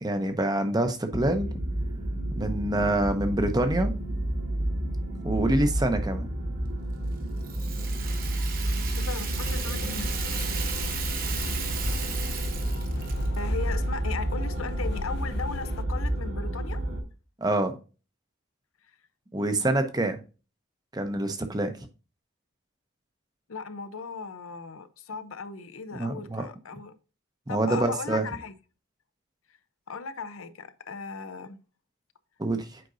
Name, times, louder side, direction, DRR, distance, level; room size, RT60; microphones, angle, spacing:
voice 1, 0.0-1.5 2.4-3.9 5.2-6.3 17.4-17.8 19.3-20.2 20.9-21.9 26.0-26.5 27.5-28.2 32.4-32.8, right 1 dB, 20° right, 0.7 m, -26 dB
sound 1, 1.1-17.0, right 1 dB, 80° right, 1.8 m, -30 dB
Rattle (instrument), 7.4-13.4, right 7 dB, 45° right, 0.9 m, -36 dB
voice 2, 9.0-10.7 13.4-16.8 23.5-26.9 27.5-28.5 29.9-31.6, left 5 dB, 85° left, 0.7 m, -37 dB
sound 2, 9.4-15.8, left 4 dB, 50° left, 0.3 m, -39 dB
7.7 x 5.1 x 2.6 m
head